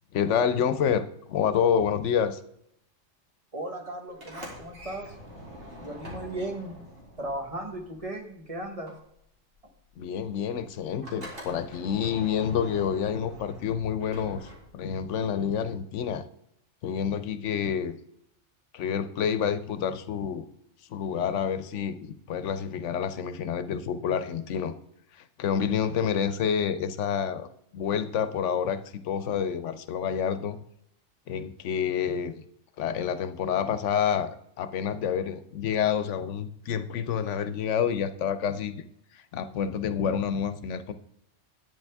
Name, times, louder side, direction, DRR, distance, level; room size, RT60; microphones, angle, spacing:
voice 1, 0.1-2.4 10.0-16.2 16.8-18.0 18.7-20.5 20.9-24.7 25.4-27.5 27.7-30.6 31.3-32.3 32.8-34.3 34.6-38.8 39.1-40.9, left 8 dB, 80° left, 12 dB, 1.0 m, -28 dB
voice 2, 3.5-5.1 5.8-6.8 7.2-8.9, right 1 dB, 30° right, 2 dB, 1.2 m, -36 dB
Sliding door, 4.1-8.4 8.6-15.0, equal, 75° right, 2.7 m, -45 dB
10.5 x 8.9 x 3.5 m, 0.74 s
omnidirectional pair, 1.2 m